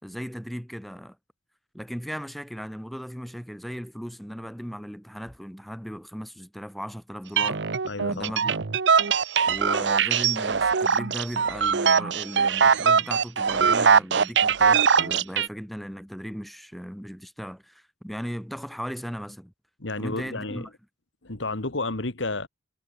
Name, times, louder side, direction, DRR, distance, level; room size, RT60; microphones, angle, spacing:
voice 1, 0.0-1.2 1.7-7.7 8.1-8.6 9.5-19.5 20.0-20.7, equal, ahead, 5.0 m, -37 dB
sound 1, 7.4-15.5, right 6 dB, 70° right, 0.8 m, -21 dB
voice 2, 7.8-8.3 19.8-20.7 21.2-22.5, left 2 dB, 85° left, 2.1 m, -31 dB
head